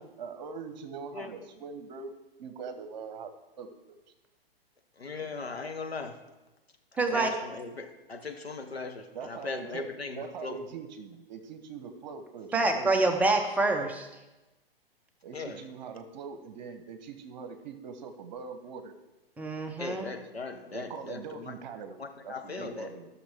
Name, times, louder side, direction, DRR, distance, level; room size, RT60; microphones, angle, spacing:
voice 1, 0.0-2.1 2.4-3.7 9.1-9.9 10.2-13.1 15.2-18.9 20.7-22.0 22.2-23.1, right 5 dB, 45° right, 8 dB, 1.1 m, -42 dB
voice 2, 5.0-6.2 6.9-10.6 15.3-15.6 19.8-21.5 22.0-22.9, left 3 dB, 85° left, 4 dB, 1.2 m, -38 dB
voice 3, 7.0-7.3 12.5-14.1 19.4-20.1, right 2 dB, 5° right, 3 dB, 0.6 m, -26 dB
15.0 x 6.4 x 3.6 m, 1.0 s
figure-of-eight pair, 115°, 30 cm